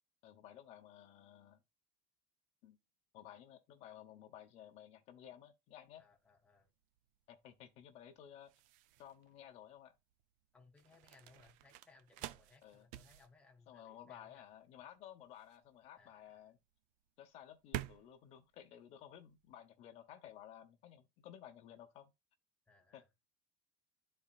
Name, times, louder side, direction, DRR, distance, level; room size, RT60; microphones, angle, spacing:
voice 1, 0.2-1.6 2.6-2.8 3.1-6.0 7.3-8.5 9.0-9.9 12.6-12.9 13.7-16.6 17.2-22.1 22.9-23.0, left 10 dB, 50° left, 1.0 m, -55 dB
sound 1, 5.7-19.6, right 14 dB, 65° right, 0.5 m, -51 dB
voice 2, 6.0-6.7 10.5-14.5 15.9-16.4 22.7-23.1, left 4 dB, 10° left, 0.9 m, -66 dB
12.0 x 4.4 x 2.4 m
cardioid pair, 160°, 13 cm